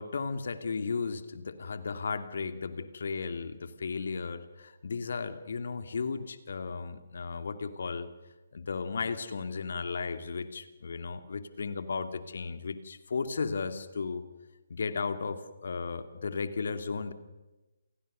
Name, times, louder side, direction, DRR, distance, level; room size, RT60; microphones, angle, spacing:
voice 1, 0.0-8.1 8.5-14.2 14.7-17.1, left 4 dB, 50° left, 10 dB, 2.4 m, -35 dB
29.5 x 29.0 x 6.7 m, 1.1 s
figure-of-eight pair, 140°, 0 cm